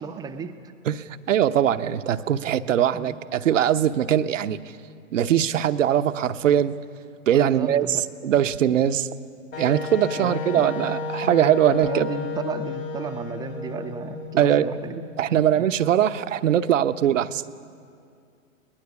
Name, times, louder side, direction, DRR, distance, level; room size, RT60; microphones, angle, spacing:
voice 1, 0.0-0.7 2.9-3.2 7.3-7.9 10.2-10.7 11.8-15.0 15.6-15.7, right 5 dB, 10° right, 7 dB, 0.6 m, -34 dB
voice 2, 0.9-4.6 5.1-6.8 7.3-9.1 9.6-12.1 14.4-14.7 15.2-17.5, right 10 dB, 65° right, 12 dB, 0.9 m, -21 dB
Wind instrument woodwind instrument, 9.5-15.3, left 4 dB, 75° left, 4.0 m, -32 dB
23.0 x 19.5 x 7.1 m, 2.3 s
hypercardioid pair, 120°, 40 cm